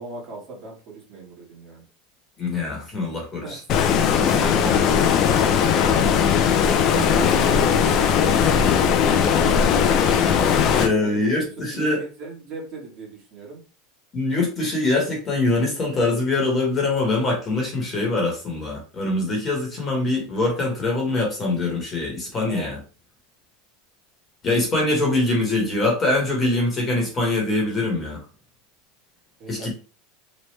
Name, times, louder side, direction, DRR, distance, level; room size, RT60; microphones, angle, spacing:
voice 1, 0.0-1.8 3.4-6.0 6.8-13.6 22.4-22.7 29.4-29.7, right 4 dB, 40° right, -2 dB, 1.3 m, -38 dB
voice 2, 2.4-3.6 4.1-4.5 10.8-12.0 14.1-22.8 24.4-28.2 29.5-29.7, left 2 dB, 20° left, -1 dB, 1.1 m, -23 dB
Stream, 3.7-10.9, left 7 dB, 40° left, 0.4 m, -18 dB
3.1 x 2.2 x 3.1 m, 0.36 s
supercardioid pair, 150°, 0 cm